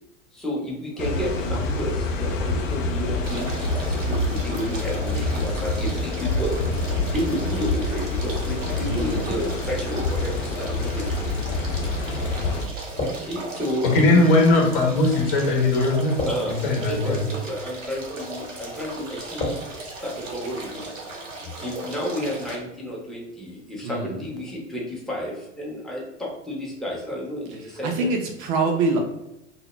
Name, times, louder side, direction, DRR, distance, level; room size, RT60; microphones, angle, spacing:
voice 1, 0.3-11.1 13.1-14.2 16.2-20.9 21.6-28.1, equal, ahead, -4 dB, 0.6 m, -31 dB
sound 1, 1.0-12.7, left 2 dB, 85° left, 0.5 m, -26 dB
sound 2, 3.2-22.6, right 2 dB, 85° right, 0.7 m, -37 dB
voice 2, 8.8-9.3 23.8-24.1 27.8-29.0, right 3 dB, 45° right, 3 dB, 0.5 m, -25 dB
sound 3, 10.6-20.8, left 1 dB, 20° left, 1.0 m, -38 dB
voice 3, 13.9-17.2, left 2 dB, 50° left, -1 dB, 0.8 m, -19 dB
2.1 x 2.0 x 3.0 m, 0.87 s
figure-of-eight pair, 85°, 38 cm